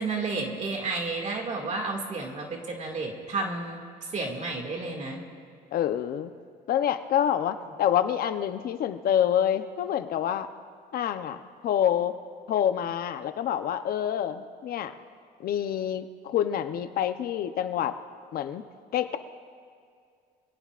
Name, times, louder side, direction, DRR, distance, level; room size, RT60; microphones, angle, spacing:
voice 1, 0.0-3.8 4.1-5.2, right 3 dB, 45° right, 0 dB, 2.3 m, -31 dB
voice 2, 5.7-6.3 6.7-10.5 10.9-11.4 11.6-12.1 12.5-14.9 15.4-17.9 18.3-18.6 18.9-19.2, left 10 dB, 60° left, 9 dB, 0.9 m, -27 dB
25.5 x 17.5 x 2.5 m, 2.3 s
cardioid pair, 110°, 17 cm